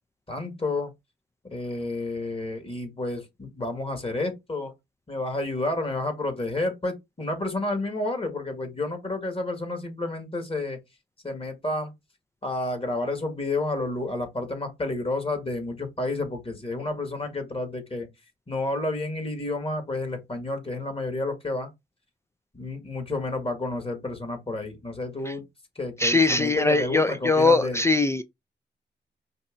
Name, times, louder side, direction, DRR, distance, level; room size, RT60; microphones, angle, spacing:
voice 1, 0.3-0.9 1.5-4.7 5.1-10.8 11.2-11.9 12.4-18.1 18.5-21.7 22.5-25.4 25.7-27.8, left 2 dB, 30° left, 1.6 m, -30 dB
voice 2, 26.0-28.2, left 3 dB, 15° left, 0.4 m, -21 dB
5.2 x 2.7 x 2.5 m
supercardioid pair, 55°, 19 cm